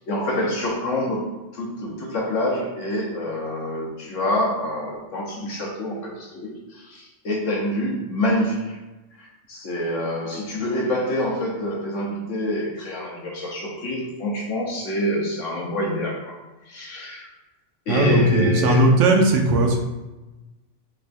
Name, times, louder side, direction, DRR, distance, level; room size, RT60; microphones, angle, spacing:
voice 1, 0.1-1.2 1.5-8.8 9.2-16.3 16.7-17.3 17.9-18.8, left 1 dB, 90° left, -2 dB, 1.2 m, -26 dB
voice 2, 17.9-19.8, right 1 dB, 90° right, 2 dB, 0.9 m, -17 dB
3.5 x 3.4 x 2.5 m, 1.1 s
omnidirectional pair, 1.2 m